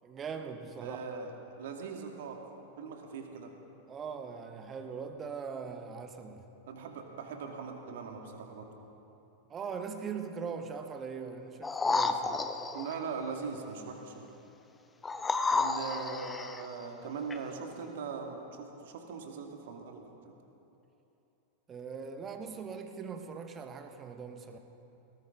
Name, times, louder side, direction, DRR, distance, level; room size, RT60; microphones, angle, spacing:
voice 1, 0.0-1.0 3.9-6.5 9.5-12.4 21.7-24.6, right 6 dB, 25° right, 6 dB, 1.4 m, -41 dB
voice 2, 0.8-2.4 2.8-3.5 6.7-8.7 12.7-14.3 15.5-20.3, right 5 dB, 55° right, 3 dB, 2.1 m, -41 dB
sound 1, 11.6-13.0 15.0-16.7 17.3-17.4, left 3 dB, 15° left, 0.8 m, -31 dB
20.0 x 18.5 x 3.9 m, 3.0 s
figure-of-eight pair, 90°, 0 cm